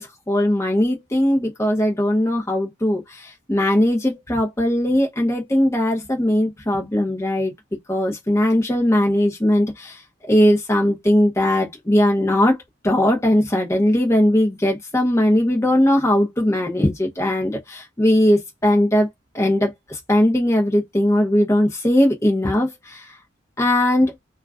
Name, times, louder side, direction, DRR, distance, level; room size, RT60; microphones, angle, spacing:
voice 1, 0.0-7.5 7.9-10.0 10.3-12.6 12.8-19.1 19.3-23.0 23.6-24.1, left 1 dB, 15° left, 0.7 m, -19 dB
2.3 x 2.2 x 3.4 m
head